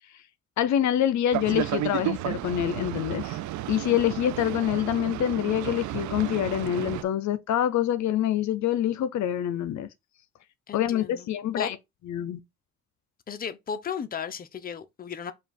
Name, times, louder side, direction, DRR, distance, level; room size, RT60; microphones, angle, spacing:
voice 1, 0.6-3.4 3.7-9.9 10.7-11.8 12.1-12.4, left 11 dB, 70° left, 0.6 m, -26 dB
Boat Water vehicle, 1.3-7.0, right 15 dB, 75° right, 0.4 m, -32 dB
voice 2, 10.7-11.3 11.6-11.7 13.3-15.3, left 7 dB, 30° left, 0.6 m, -35 dB
5.1 x 2.4 x 4.2 m
cardioid pair, 90°, 30 cm